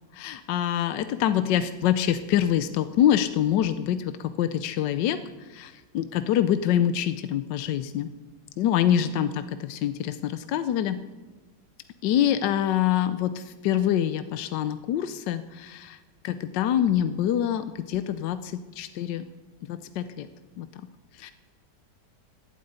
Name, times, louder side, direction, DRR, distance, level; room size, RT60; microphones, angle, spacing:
voice 1, 0.1-8.1 8.6-11.0 12.0-16.0 16.2-19.3 19.7-20.3 20.6-20.7 21.1-21.3, left 10 dB, 85° left, 11 dB, 1.3 m, -25 dB
12.0 x 11.5 x 8.8 m, 1.3 s
omnidirectional pair, 1.9 m